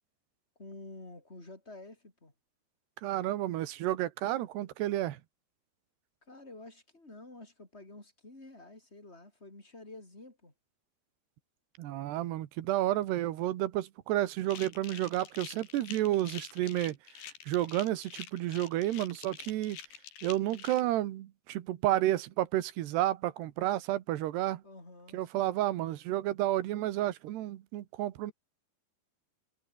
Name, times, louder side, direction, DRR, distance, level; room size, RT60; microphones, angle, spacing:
voice 1, 0.6-2.3 6.2-10.5 24.6-25.6, left 2 dB, 15° left, 5.9 m, -50 dB
voice 2, 3.0-5.2 11.8-17.0 17.5-19.8 20.2-24.6 25.1-28.3, right 14 dB, 80° right, 3.4 m, -31 dB
sound 1, 14.5-20.8, left 9 dB, 75° left, 4.6 m, -47 dB
omnidirectional pair, 4.8 m